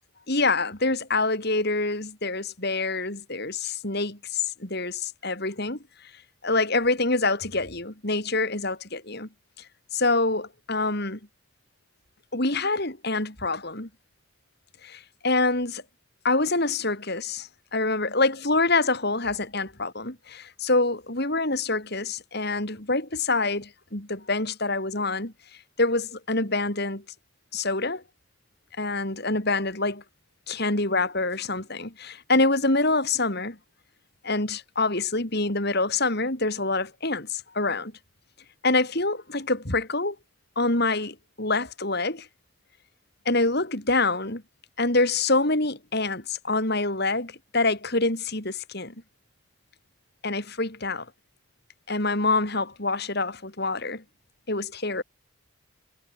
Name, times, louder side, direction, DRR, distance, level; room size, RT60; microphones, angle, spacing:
voice 1, 0.3-5.8 6.4-9.3 9.9-11.2 12.3-13.9 14.8-15.8 16.2-25.3 25.8-27.0 27.5-28.0 28.8-30.0 30.5-33.6 34.2-37.9 38.6-40.2 40.6-42.3 43.3-44.4 44.8-48.9 50.2-51.1 51.9-54.0 54.5-55.0, left 3 dB, 50° left, 3.9 m, -26 dB
head